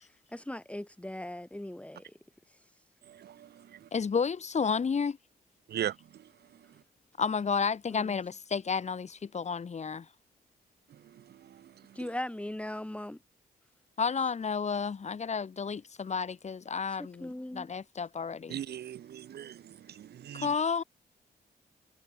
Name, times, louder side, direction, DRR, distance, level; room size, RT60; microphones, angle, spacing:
voice 1, 0.3-2.1 7.9-8.2 12.0-13.2 17.2-17.7, left 1 dB, 5° left, 3.6 m, -39 dB
voice 2, 3.0-3.9 5.7-6.7 10.9-12.1 18.5-20.5, right 10 dB, 85° right, 4.3 m, -40 dB
voice 3, 3.9-5.2 7.2-10.1 14.0-18.6 20.3-20.8, left 5 dB, 45° left, 4.9 m, -31 dB
cardioid pair, 100°, 16 cm